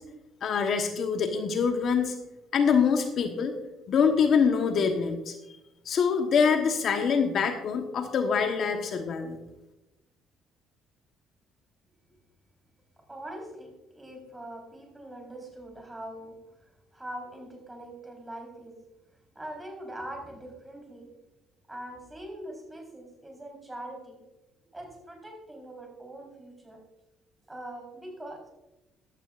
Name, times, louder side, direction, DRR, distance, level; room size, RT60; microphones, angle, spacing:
voice 1, 0.4-2.1 2.5-3.5 3.9-5.4 5.8-9.4, left 6 dB, 55° left, 5 dB, 1.2 m, -25 dB
voice 2, 13.1-18.8 19.3-21.1 21.7-24.2 24.7-26.8 27.5-28.5, right 1 dB, 10° right, 1 dB, 4.0 m, -42 dB
15.0 x 12.5 x 2.5 m, 0.97 s
cardioid pair, 115°, 0 cm